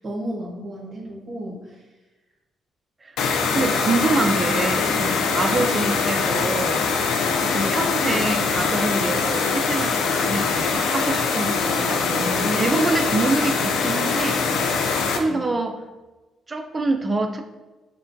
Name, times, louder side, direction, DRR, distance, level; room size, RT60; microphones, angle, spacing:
voice 1, 0.0-1.8 3.6-3.7 4.9-5.2 11.8-12.7 15.3-15.4, equal, 45° right, -1 dB, 1.2 m, -32 dB
sound 1, 3.2-15.2, left 5 dB, 85° left, 0.5 m, -23 dB
voice 2, 3.5-4.9 5.3-14.7 15.2-15.8 16.5-17.4, right 3 dB, 25° right, 5 dB, 0.4 m, -26 dB
6.4 x 2.3 x 2.6 m, 1.1 s
cardioid pair, 90°, 0 cm